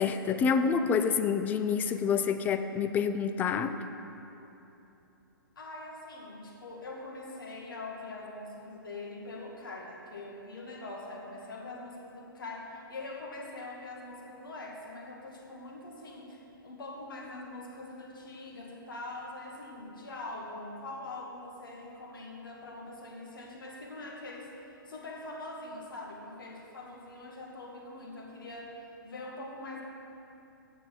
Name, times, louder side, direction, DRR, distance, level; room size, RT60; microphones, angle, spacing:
voice 1, 0.0-3.8, left 6 dB, 15° left, 10 dB, 0.3 m, -27 dB
voice 2, 5.6-24.5 24.9-28.7 29.0-29.8, left 2 dB, 65° left, -2 dB, 2.0 m, -43 dB
7.9 x 7.0 x 6.3 m, 3.0 s
figure-of-eight pair, 125°, 12 cm